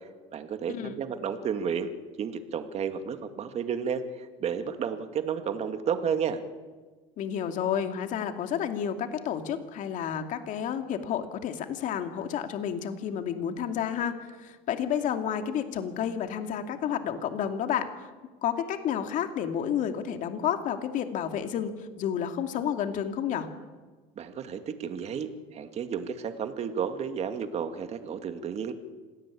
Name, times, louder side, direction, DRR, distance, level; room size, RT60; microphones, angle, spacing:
voice 1, 0.3-1.9 2.2-6.4 24.2-28.7, right 7 dB, 40° right, 8 dB, 2.2 m, -32 dB
voice 2, 7.2-18.1 18.4-23.5, left 8 dB, 55° left, 6 dB, 2.5 m, -30 dB
26.5 x 17.5 x 8.6 m, 1.4 s
supercardioid pair, 105°, 16 cm